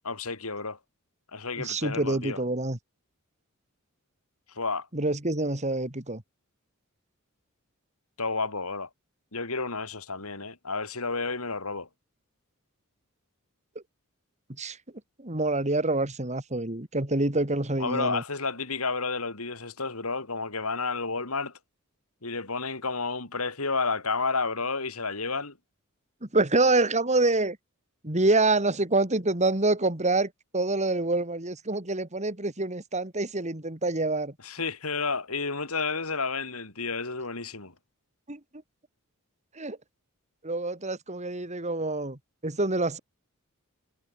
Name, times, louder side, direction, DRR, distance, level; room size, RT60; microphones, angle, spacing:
voice 1, 0.0-0.8 1.3-2.4 4.5-4.9 8.2-8.9 9.3-11.9 17.8-21.6 22.2-25.6 34.4-37.7, left 4 dB, 80° left, 4.7 m, -31 dB
voice 2, 1.6-2.8 4.9-6.2 14.6-14.8 15.2-18.2 26.2-27.6 28.0-34.3 38.3-38.4 39.6-39.8 40.4-43.0, right 2 dB, 30° right, 2.9 m, -26 dB
head